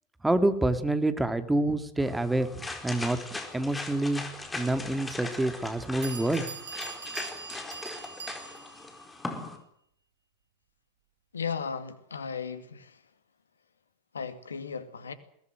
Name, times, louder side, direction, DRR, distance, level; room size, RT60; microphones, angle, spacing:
voice 1, 0.2-3.2 3.5-4.2 4.5-6.4, right 1 dB, 5° right, 9 dB, 2.5 m, -27 dB
sound 1, 2.0-9.6, left 2 dB, 10° left, 4.4 m, -39 dB
Bell, 5.6-5.7 6.0-8.8, right 5 dB, 70° right, 3.9 m, -42 dB
voice 2, 11.3-13.0 14.1-15.1, left 6 dB, 80° left, 11 dB, 2.2 m, -36 dB
22.0 x 18.0 x 9.2 m, 0.70 s
figure-of-eight pair, 90°, 0 cm